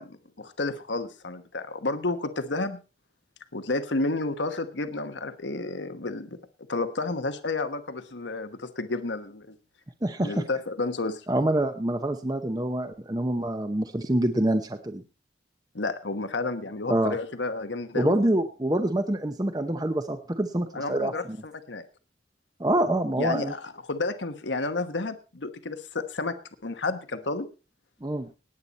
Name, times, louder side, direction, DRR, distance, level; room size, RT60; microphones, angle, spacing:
voice 1, 0.0-2.8 3.5-6.3 6.7-9.5 10.2-11.2 15.7-18.2 20.7-21.8 23.2-26.4 26.6-27.5, left 3 dB, 85° left, 9 dB, 1.2 m, -31 dB
voice 2, 10.0-10.4 11.3-15.0 16.9-17.2 17.9-21.4 22.6-23.5 28.0-28.3, right 1 dB, 20° right, 7 dB, 0.7 m, -26 dB
18.5 x 8.7 x 4.1 m, 0.34 s
head